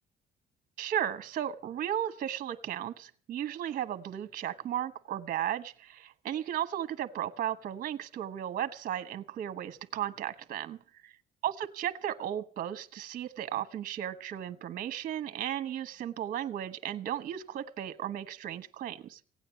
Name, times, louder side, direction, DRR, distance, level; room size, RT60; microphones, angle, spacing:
voice 1, 0.8-10.8 11.0-11.1 11.4-19.2, right 11 dB, 55° right, 10 dB, 1.1 m, -35 dB
16.5 x 9.0 x 8.1 m, 0.43 s
cardioid pair, 110°, 17 cm